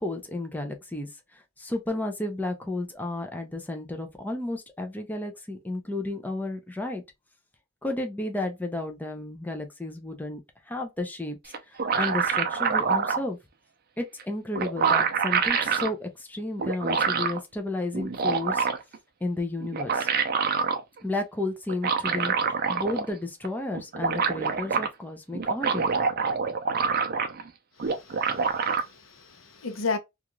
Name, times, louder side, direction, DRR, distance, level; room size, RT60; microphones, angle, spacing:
voice 1, 0.0-7.0 7.8-10.4 10.7-13.4 14.0-18.7 19.2-20.1 21.0-25.9, left 2 dB, 10° left, 0.5 m, -32 dB
sound 1, 11.5-13.2 14.2-14.3 14.5-15.9 16.6-17.4 17.9-19.0 19.6-20.8 21.7-23.1 23.4-23.5 23.7-24.9 25.3-27.5 27.8-28.8, right 6 dB, 50° right, 0.5 m, -26 dB
voice 2, 27.8-30.0, left 4 dB, 75° left, 0.7 m, -34 dB
2.4 x 2.4 x 2.9 m
head